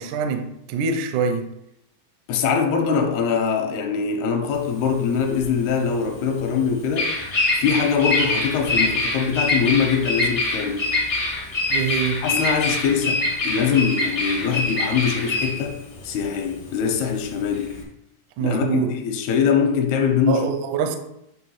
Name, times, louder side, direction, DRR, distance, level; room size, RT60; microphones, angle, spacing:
voice 1, 0.0-1.5 11.7-12.2 18.4-18.9 20.3-21.0, right 6 dB, 75° right, 1.9 m, -24 dB
voice 2, 2.3-7.1 7.6-11.0 12.2-17.8 18.4-20.4, left 6 dB, 80° left, 2.9 m, -22 dB
Bird vocalization bird call bird song, 4.5-17.8, left 2 dB, 60° left, 0.6 m, -25 dB
8.6 x 3.5 x 6.3 m
omnidirectional pair, 4.5 m